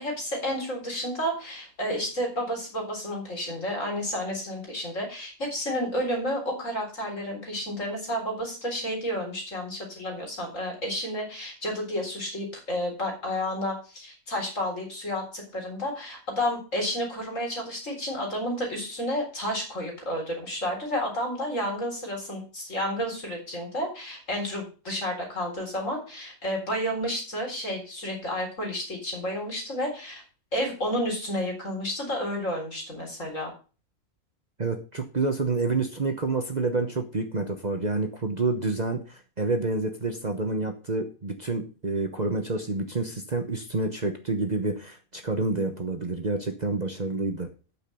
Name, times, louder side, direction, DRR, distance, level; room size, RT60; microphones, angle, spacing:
voice 1, 0.0-30.2 30.5-33.5, equal, 60° left, 1 dB, 4.1 m, -31 dB
voice 2, 34.6-47.5, right 3 dB, 35° right, 5 dB, 1.0 m, -28 dB
8.9 x 6.1 x 6.8 m, 0.35 s
omnidirectional pair, 1.5 m